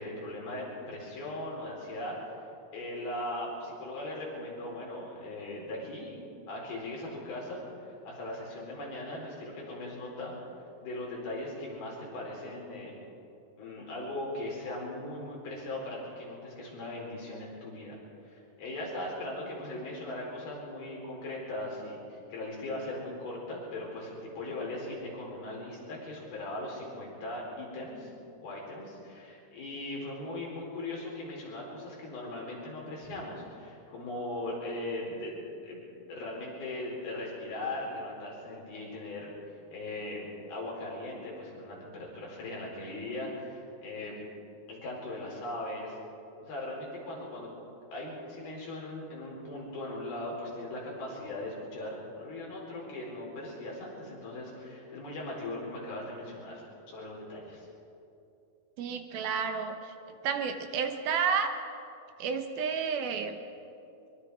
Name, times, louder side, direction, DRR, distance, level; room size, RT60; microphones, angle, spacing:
voice 1, 0.0-2.2 2.7-6.2 6.5-10.3 10.8-12.9 13.6-18.0 18.2-28.1 28.4-35.3 35.6-35.8 36.1-44.2 44.7-46.0 46.4-47.5 47.9-57.7, left 1 dB, 70° left, -3 dB, 6.6 m, -39 dB
voice 2, 58.8-59.8 60.2-61.5 62.2-63.4, right 6 dB, 75° right, 6 dB, 2.9 m, -30 dB
23.0 x 23.0 x 5.0 m, 2.7 s
omnidirectional pair, 4.5 m